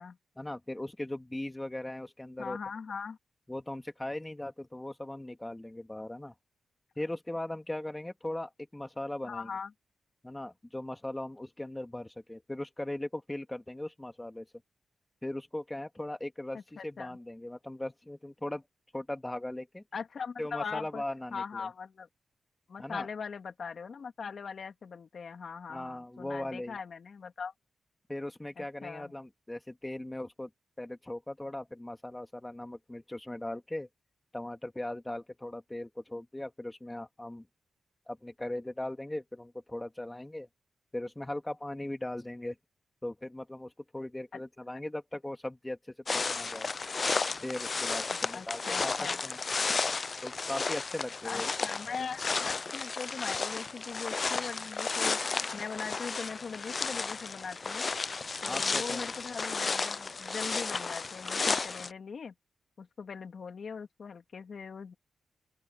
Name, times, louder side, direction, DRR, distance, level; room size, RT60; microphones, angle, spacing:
voice 1, 0.4-2.6 3.5-6.3 7.0-9.5 10.2-14.5 15.2-18.6 18.9-19.8 20.4-21.7 22.8-23.1 25.7-26.8 28.1-30.5 30.8-33.9 34.3-37.5 38.1-40.5 40.9-42.6 43.0-46.7 47.4-49.4 50.2-51.5 58.5-59.2, left 1 dB, 10° left, 2.2 m, -39 dB
voice 2, 2.4-3.2 9.2-9.7 16.5-17.2 19.9-21.0 21.3-22.1 22.7-27.5 28.6-29.1 44.3-44.4 48.1-49.2 51.2-57.8 58.4-62.3 62.8-64.9, left 5 dB, 55° left, 2.9 m, -41 dB
sound 1, 46.1-61.9, left 4 dB, 40° left, 0.5 m, -33 dB
open air
cardioid pair, 100°, 0 cm